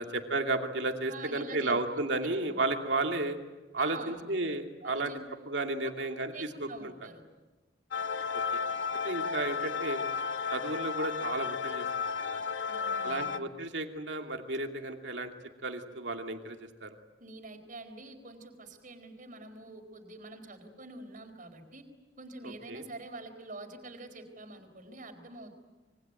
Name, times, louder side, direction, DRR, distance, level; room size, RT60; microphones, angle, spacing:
voice 1, 0.0-3.4 3.7-5.1 5.5-6.3 6.8-6.9 9.0-10.0 10.5-11.9 12.2-12.4 13.0-15.3 15.6-16.9 22.4-22.8, right 2 dB, 70° right, 4 dB, 2.6 m, -33 dB
voice 2, 1.1-1.8 3.8-4.2 4.8-5.2 6.3-7.2 12.7-13.5 17.2-21.8 22.2-25.5, right 2 dB, 45° right, 5 dB, 4.3 m, -46 dB
sound 1, 7.9-13.4, left 5 dB, 75° left, 1.0 m, -33 dB
26.0 x 23.5 x 9.2 m, 1.2 s
head